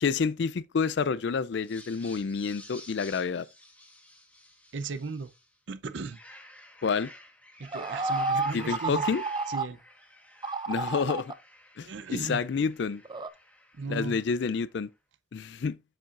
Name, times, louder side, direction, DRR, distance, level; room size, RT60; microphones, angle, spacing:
voice 1, 0.0-3.5 6.8-7.1 8.5-9.2 10.7-11.3 11.8-11.9 12.2-13.0 13.9-14.9 15.3-15.8, left 5 dB, 60° left, 0.4 m, -28 dB
sound 1, 1.6-5.5 5.9-14.6, left 1 dB, 10° left, 1.3 m, -51 dB
voice 2, 4.7-5.3 5.7-6.2 7.6-9.1 9.5-9.8 11.8-12.4 13.7-14.2, right 4 dB, 70° right, 0.6 m, -36 dB
sound 2, 7.7-9.7 10.4-11.3 13.1-13.3, right 3 dB, 20° right, 0.4 m, -30 dB
7.7 x 7.0 x 2.5 m
head